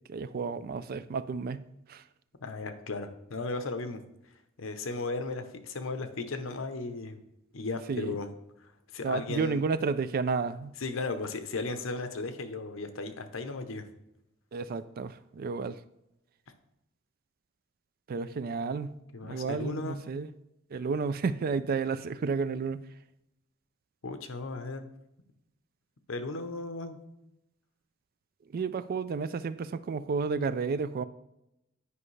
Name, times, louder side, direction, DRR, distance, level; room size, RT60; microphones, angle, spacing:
voice 1, 0.1-1.6 1.9-2.0 7.9-8.1 9.0-10.7 14.5-15.8 18.1-18.9 19.2-20.3 20.7-22.8 28.5-31.0, right 5 dB, 50° right, 0.3 m, -31 dB
voice 2, 2.4-4.0 4.6-7.2 7.5-8.3 8.9-9.6 10.8-13.9 19.1-20.0 24.0-24.9 26.1-27.0, left 3 dB, 80° left, 0.8 m, -35 dB
9.8 x 5.3 x 3.2 m
head